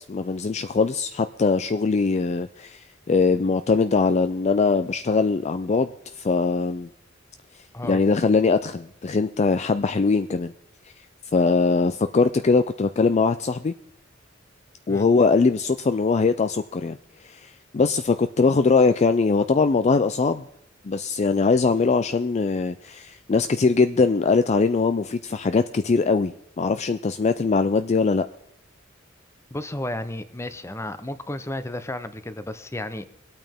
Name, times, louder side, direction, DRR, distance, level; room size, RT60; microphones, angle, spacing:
voice 1, 0.1-5.9 6.1-6.9 7.8-10.5 11.3-13.7 14.9-17.0 17.2-20.5 20.8-28.3, left 4 dB, 35° left, 10 dB, 0.4 m, -21 dB
voice 2, 29.5-33.1, left 1 dB, 15° left, 12 dB, 0.7 m, -33 dB
23.0 x 8.8 x 3.6 m, 0.75 s
head